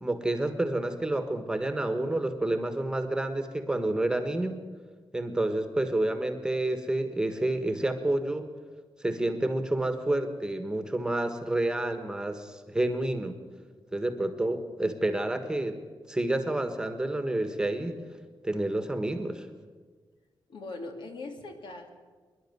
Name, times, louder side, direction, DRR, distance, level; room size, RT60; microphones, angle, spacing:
voice 1, 0.0-4.6 5.1-8.5 9.0-13.4 13.9-15.8 16.1-18.0 18.4-19.5, right 1 dB, 10° right, 8 dB, 1.5 m, -29 dB
voice 2, 20.5-21.9, left 2 dB, 75° left, 4 dB, 2.9 m, -40 dB
24.5 x 11.5 x 9.5 m, 1.5 s
wide cardioid pair, 160°, 8 cm